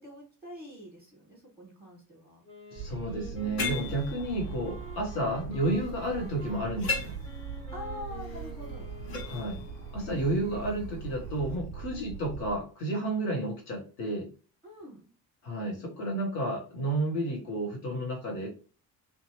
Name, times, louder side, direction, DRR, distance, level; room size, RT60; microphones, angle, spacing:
voice 1, 0.0-2.4 5.9-6.0 7.7-9.5 11.9-12.1 14.6-15.1, left 1 dB, 5° left, -3 dB, 1.4 m, -45 dB
Wind instrument woodwind instrument, 2.4-10.1, right 1 dB, 25° left, 1.5 m, -48 dB
voice 2, 2.7-7.1 9.3-9.6 9.9-14.3 15.4-18.5, right 1 dB, 75° left, 0 dB, 1.1 m, -31 dB
sound 1, 2.8-12.6, right 5 dB, 35° right, 0.4 m, -41 dB
sound 2, 3.6-11.6, left 3 dB, 45° left, 1.0 m, -40 dB
2.6 x 2.4 x 2.7 m, 0.37 s
figure-of-eight pair, 45°, 49 cm